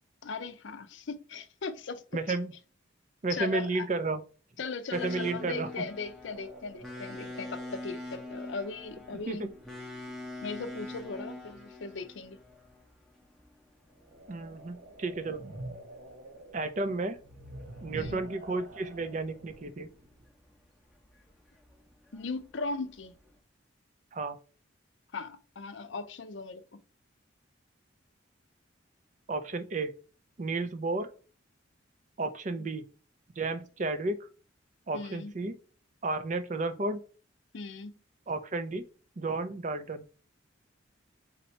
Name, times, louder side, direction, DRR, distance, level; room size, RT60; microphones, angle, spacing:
voice 1, 0.2-2.2 3.3-3.9 4.6-9.5 10.4-12.4 17.9-18.2 22.1-23.1 25.1-26.8 32.6-32.7 34.9-35.3 37.5-37.9, left 4 dB, 65° left, 0.5 m, -38 dB
voice 2, 2.1-2.5 3.2-4.2 4.9-5.7 7.2-7.3 9.3-9.5 14.3-15.4 16.5-17.2 17.8-19.9 24.1-24.4 29.3-29.9 30.4-31.1 32.2-32.9 33.4-34.3 34.9-35.6 36.0-37.0 38.3-38.8 39.2-40.0, right 3 dB, 40° right, 0.5 m, -32 dB
sound 1, 4.9-23.4, left 1 dB, ahead, 0.7 m, -46 dB
sound 2, 6.3-11.4 13.9-20.3, right 1 dB, 75° right, 0.9 m, -49 dB
4.0 x 2.8 x 4.3 m
head